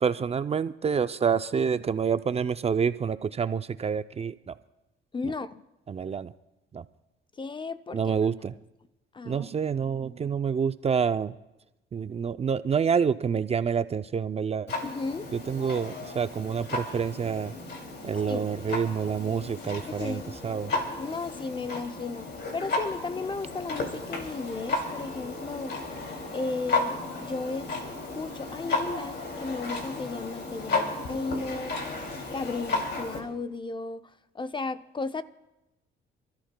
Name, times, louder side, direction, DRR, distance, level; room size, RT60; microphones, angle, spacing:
voice 1, 0.0-4.5 5.9-6.3 6.7-6.9 7.9-8.5 9.3-11.3 11.9-14.7 15.3-17.5 18.0-20.7, right 6 dB, 30° right, 0.4 m, -28 dB
voice 2, 5.1-5.6 7.4-8.2 9.1-9.5 14.8-15.3 18.3-18.5 19.9-20.4 21.0-25.7 26.3-27.8 28.1-31.8 32.3-35.2, left 3 dB, 25° left, 0.5 m, -34 dB
Clock, 14.7-33.2, left 3 dB, 55° left, 2.6 m, -34 dB
sound 1, 24.3-26.9 27.2-29.3 29.6-29.9, right 7 dB, 80° right, 2.1 m, -53 dB
28.5 x 13.0 x 2.2 m
cardioid pair, 90°, 20 cm